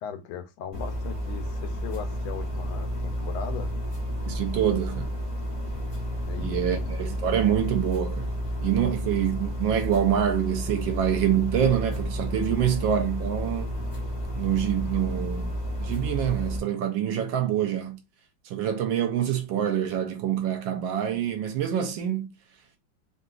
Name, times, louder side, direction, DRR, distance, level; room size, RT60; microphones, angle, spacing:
voice 1, 0.0-3.7 6.3-6.9, left 7 dB, 85° left, 1.5 m, -38 dB
sound 1, 0.7-16.6, equal, 35° left, 0.5 m, -31 dB
voice 2, 4.3-5.1 6.4-8.3 8.6-13.7 14.4-18.0 18.5-22.3, right 9 dB, 75° right, 1.2 m, -26 dB
3.8 x 2.4 x 2.3 m
omnidirectional pair, 2.3 m